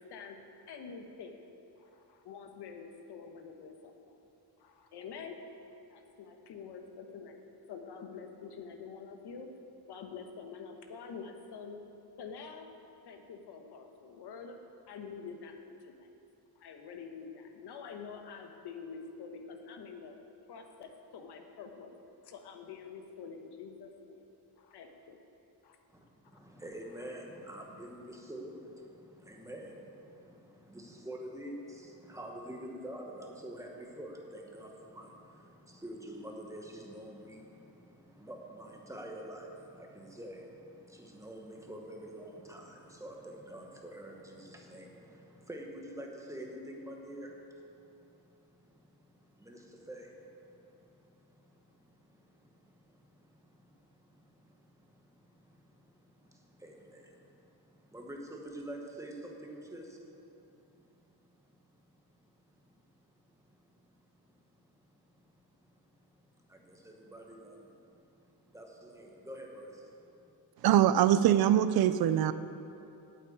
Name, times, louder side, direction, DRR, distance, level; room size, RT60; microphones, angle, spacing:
voice 1, 0.7-1.4 1.8-4.2 4.6-5.3 5.9-7.4 7.7-9.5 9.9-11.8 12.2-12.7 13.1-14.5 14.9-16.1 16.6-20.1 20.5-21.9 22.2-24.2 24.6-25.2 25.6-25.8, left 5 dB, 80° left, 5 dB, 1.2 m, -46 dB
voice 2, 26.3-61.2 61.5-61.7 62.2-62.3 63.4-63.7 64.3-64.7 65.1-65.2 65.6-65.7 66.0-66.2 66.5-70.3, right 1 dB, 10° right, 0 dB, 1.1 m, -48 dB
voice 3, 70.6-72.3, right 11 dB, 70° right, 13 dB, 0.5 m, -23 dB
8.7 x 8.4 x 8.7 m, 2.8 s
wide cardioid pair, 180°, 39 cm